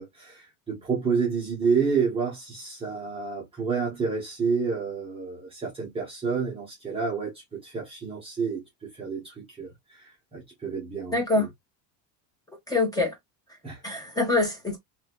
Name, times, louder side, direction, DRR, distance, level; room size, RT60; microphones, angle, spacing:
voice 1, 0.0-11.5 13.6-13.8, right 5 dB, 10° right, 1.0 m, -29 dB
voice 2, 11.1-11.5 12.7-13.2 13.5-13.6 13.8-14.8, left 3 dB, 10° left, 1.5 m, -25 dB
3.5 x 3.2 x 2.4 m
cardioid pair, 155°, 47 cm